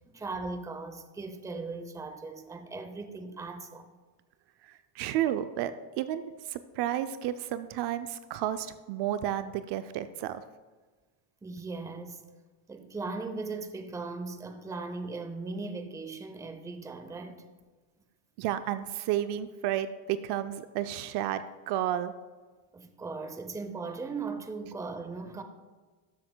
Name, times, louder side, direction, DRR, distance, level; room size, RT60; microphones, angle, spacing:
voice 1, 0.1-3.9 9.0-9.1 11.4-12.2 12.7-17.5 22.7-25.4, right 3 dB, 5° right, 0.5 m, -38 dB
voice 2, 4.6-10.4 18.4-22.1, right 11 dB, 55° right, 0.5 m, -32 dB
12.5 x 7.5 x 2.2 m
supercardioid pair, 105°, 49 cm